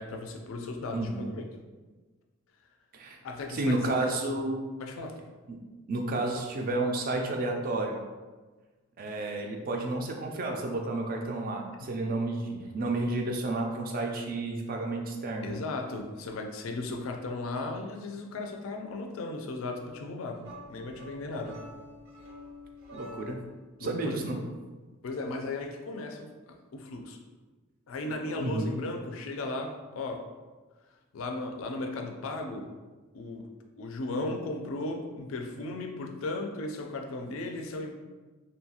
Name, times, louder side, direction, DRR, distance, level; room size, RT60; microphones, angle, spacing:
voice 1, 0.0-1.5 3.2-4.1 4.8-5.2 11.8-11.9 15.4-21.6 23.8-24.2 25.0-27.2 27.9-30.2 31.1-32.7 33.1-33.5 33.8-37.9, left 2 dB, 75° left, 3 dB, 0.4 m, -36 dB
voice 2, 0.9-1.3 2.9-3.2 3.5-4.6 5.5-5.6 5.9-8.0 9.0-15.5 22.9-23.4 23.8-24.4 28.4-28.7, right 2 dB, 45° right, 2 dB, 0.3 m, -31 dB
sound 1, 20.4-23.6, equal, 80° right, 0.7 m, -47 dB
2.7 x 2.3 x 2.8 m, 1.3 s
head